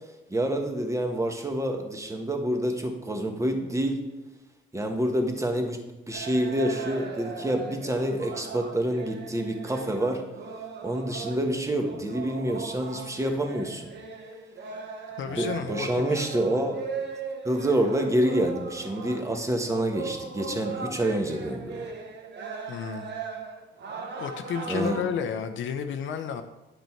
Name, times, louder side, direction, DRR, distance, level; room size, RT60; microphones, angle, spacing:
voice 1, 0.3-4.0 4.7-5.8 6.1-10.2 10.8-13.9 15.3-16.8 17.4-21.8 24.7-25.0, right 1 dB, 15° right, 4 dB, 1.3 m, -27 dB
sound 1, 6.1-25.1, right 5 dB, 60° right, 1.2 m, -38 dB
voice 2, 15.2-16.0 22.7-23.2 24.2-26.4, left 7 dB, 75° left, 7 dB, 0.6 m, -31 dB
9.7 x 5.2 x 4.5 m, 1.0 s
cardioid pair, 90°, 20 cm